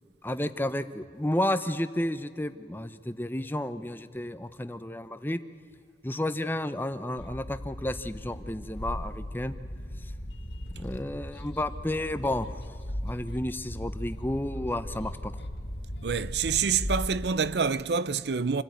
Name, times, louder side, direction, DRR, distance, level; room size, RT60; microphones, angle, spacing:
voice 1, 0.2-5.4 6.0-9.5 10.8-12.5 13.0-15.4, left 1 dB, 10° left, 0.8 m, -31 dB
sound 1, 7.2-17.2, equal, 90° left, 1.7 m, -37 dB
voice 2, 16.0-18.6, right 6 dB, 75° right, 0.6 m, -27 dB
27.0 x 15.5 x 9.4 m
head